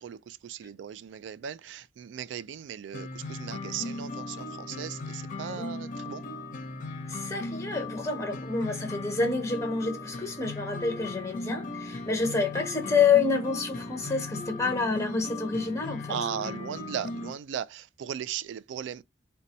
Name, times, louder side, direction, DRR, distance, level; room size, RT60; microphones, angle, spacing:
voice 1, 0.0-6.2 16.1-19.0, right 8 dB, 80° right, 0.3 m, -37 dB
sound 1, 2.9-17.3, left 2 dB, 45° left, 0.6 m, -37 dB
voice 2, 7.1-16.3, left 5 dB, 15° left, 0.9 m, -28 dB
2.7 x 2.2 x 4.0 m
head